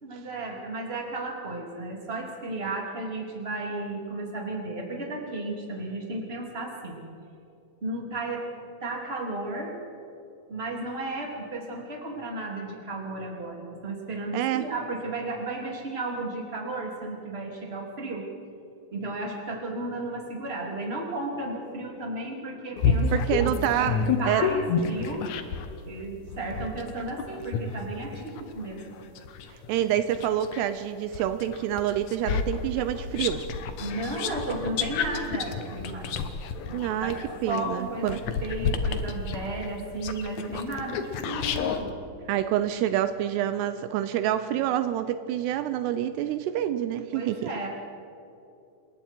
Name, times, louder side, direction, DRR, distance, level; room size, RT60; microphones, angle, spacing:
voice 1, 0.0-7.0 7.8-8.4 8.8-9.8 10.5-18.3 18.9-23.9 24.2-25.3 25.9-28.8 33.8-36.2 36.6-37.1 37.5-41.9 47.1-47.7, right 2 dB, 15° right, 0 dB, 2.9 m, -34 dB
voice 2, 14.3-14.7 23.1-24.0 24.2-24.5 29.5-33.5 36.7-38.2 42.3-47.5, right 11 dB, 80° right, 11 dB, 2.7 m, -27 dB
sound 1, 22.8-25.8 26.3-30.7 31.1-41.8, left 5 dB, 70° left, 1.8 m, -30 dB
27.5 x 21.5 x 4.6 m, 2.8 s
omnidirectional pair, 4.9 m